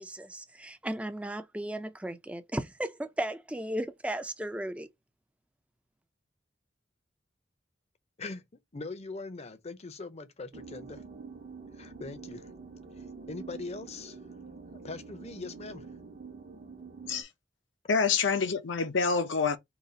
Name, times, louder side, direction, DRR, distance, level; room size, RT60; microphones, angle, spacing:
voice 1, 0.0-4.9, right 1 dB, 5° right, 0.4 m, -35 dB
voice 2, 8.2-11.0 11.7-12.5 12.9-14.2 14.7-15.9, left 3 dB, 35° left, 0.6 m, -42 dB
sound 1, 10.5-17.2, right 4 dB, 45° right, 0.8 m, -46 dB
voice 3, 17.9-19.6, left 5 dB, 85° left, 0.7 m, -27 dB
3.9 x 2.4 x 3.9 m
head